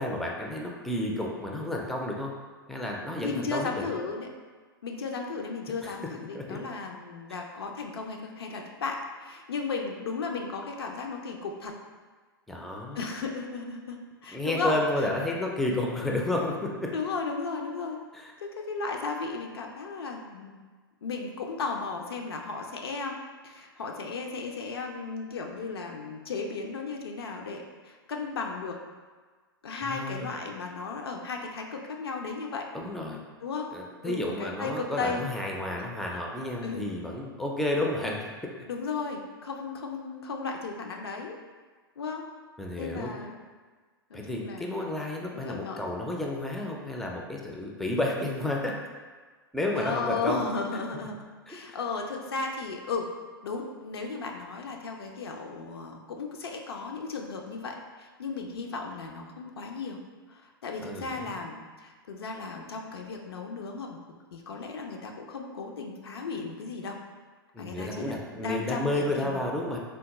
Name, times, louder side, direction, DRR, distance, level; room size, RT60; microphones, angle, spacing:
voice 1, 0.0-2.3 2.7-3.9 5.8-5.9 6.3-6.6 12.5-13.0 14.3-16.9 18.1-18.3 29.8-30.3 32.7-33.2 33.7-38.2 42.6-43.1 44.1-48.7 49.5-50.4 51.5-51.6 60.8-61.3 67.5-69.8, left 1 dB, ahead, -1 dB, 0.3 m, -31 dB
voice 2, 3.2-4.3 4.8-11.7 13.0-15.1 16.9-18.0 18.4-20.6 21.0-23.2 23.4-28.8 29.6-32.7 33.4-33.7 34.0-35.2 35.7-35.8 36.6-36.9 38.7-41.4 42.0-42.3 42.8-43.4 44.1-44.7 45.3-45.9 49.7-53.1 53.4-60.0 60.3-64.0 64.3-67.0 67.6-69.4, left 4 dB, 80° left, 2 dB, 0.4 m, -35 dB
3.4 x 2.1 x 2.9 m, 1.4 s
hypercardioid pair, 105°, 13 cm